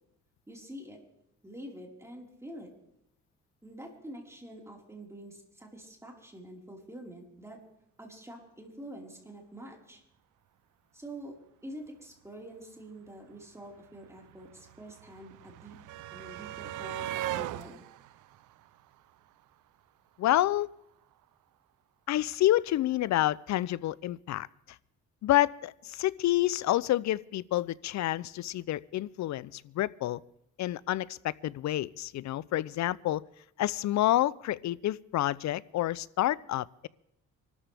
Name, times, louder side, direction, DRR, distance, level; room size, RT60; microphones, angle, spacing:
voice 1, 0.5-1.0 1.4-2.7 3.6-7.6 8.0-10.0 10.9-11.4 11.6-15.8 16.1-17.8, right 1 dB, 10° right, -1 dB, 4.6 m, -46 dB
sound 1, 13.1-13.2 13.3-19.5 20.7-20.8 21.1-21.2, right 13 dB, 80° right, 0.7 m, -40 dB
voice 2, 20.2-20.7 22.1-24.5 25.2-30.2 30.6-33.2 33.6-36.9, left 14 dB, 60° left, 21 dB, 0.5 m, -28 dB
25.5 x 13.5 x 3.5 m, 0.77 s
cardioid pair, 80°, 31 cm